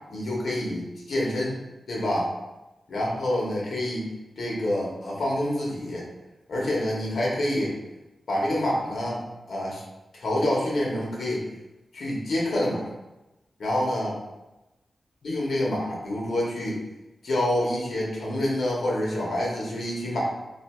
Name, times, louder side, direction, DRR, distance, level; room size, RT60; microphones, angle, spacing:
voice 1, 0.1-1.6 1.9-2.3 2.9-4.1 4.4-6.0 6.5-7.8 8.3-9.2 9.5-9.8 10.1-11.4 11.9-12.9 13.6-14.1 15.2-16.8 17.2-20.2, left 1 dB, 75° left, -4 dB, 1.0 m, -27 dB
2.7 x 2.6 x 4.3 m, 1.0 s
wide cardioid pair, 120°, 0 cm